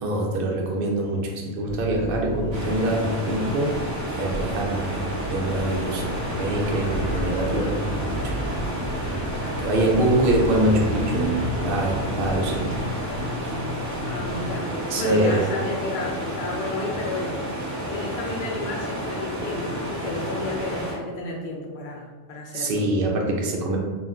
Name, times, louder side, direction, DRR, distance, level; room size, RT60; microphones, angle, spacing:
voice 1, 0.0-3.8 4.1-8.3 9.6-12.8 14.9-15.5 22.5-23.8, right 1 dB, 60° right, 0 dB, 0.6 m, -24 dB
sound 1, 1.7-14.5, equal, 70° left, 1.0 m, -32 dB
sound 2, 2.5-20.9, right 1 dB, 20° right, 0.5 m, -31 dB
voice 2, 9.7-10.3 14.0-17.3 17.8-22.8, left 3 dB, 55° left, -1 dB, 0.6 m, -32 dB
2.4 x 2.1 x 3.5 m, 1.4 s
omnidirectional pair, 1.2 m